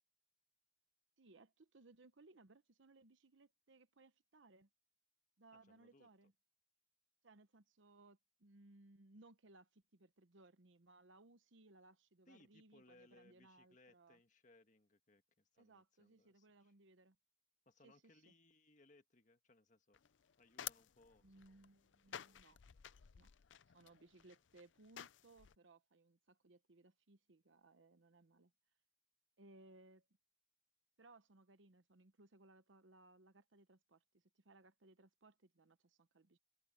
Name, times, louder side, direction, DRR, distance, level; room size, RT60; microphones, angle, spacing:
voice 1, 1.2-4.7 5.4-6.3 7.2-14.2 15.6-17.2 17.8-18.3 21.2-22.6 23.1-23.3 23.7-28.5 29.4-30.1 31.0-36.4, right 2 dB, 80° right, 0.9 m, -65 dB
voice 2, 5.5-6.1 12.3-16.7 17.7-20.0 20.4-21.6 22.1-22.4, left 2 dB, 40° left, 1.7 m, -69 dB
sound 1, 19.9-25.6, left 10 dB, 75° left, 0.5 m, -54 dB
head